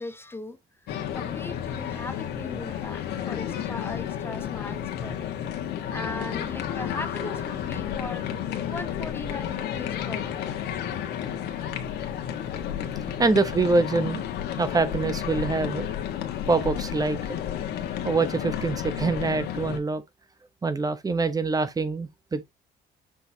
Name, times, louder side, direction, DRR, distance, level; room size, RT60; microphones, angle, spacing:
voice 1, 0.0-5.3 5.9-8.3 8.6-10.4 12.8-13.0, left 2 dB, 15° left, 0.7 m, -39 dB
sound 1, 0.9-19.8, left 10 dB, 80° left, 1.5 m, -32 dB
voice 2, 13.2-14.2 14.6-15.9 16.5-17.2 18.0-20.0 20.6-22.5, right 3 dB, 20° right, 0.9 m, -25 dB
6.6 x 5.3 x 2.8 m
cardioid pair, 110°, 17 cm